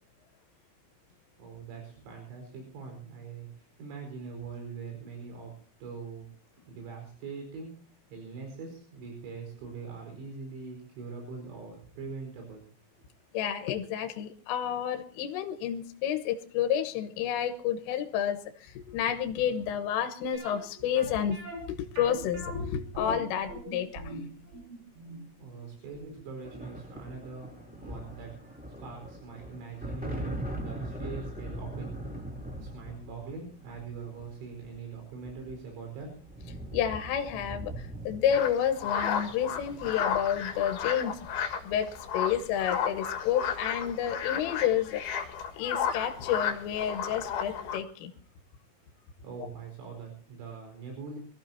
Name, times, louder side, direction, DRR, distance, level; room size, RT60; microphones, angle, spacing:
voice 1, 1.4-5.5 5.8-6.3 6.7-7.7 8.1-12.7 25.4-28.3 28.8-31.9 32.6-36.2 49.2-51.2, right 5 dB, 85° right, 3 dB, 7.4 m, -42 dB
voice 2, 13.3-21.4 21.7-24.2 36.7-41.2 41.6-45.0 45.6-48.1, left 9 dB, 80° left, 6 dB, 3.7 m, -30 dB
sound 1, 20.3-27.2 27.5-27.6 28.1-28.3 28.6-28.7, right 1 dB, 65° right, 7.6 m, -43 dB
sound 2, 26.4-42.2 43.3-43.6 43.9-44.6, right 1 dB, 5° right, 1.0 m, -41 dB
sound 3, 38.3-47.8, left 7 dB, 60° left, 3.0 m, -33 dB
24.5 x 15.0 x 2.8 m, 0.43 s
omnidirectional pair, 6.0 m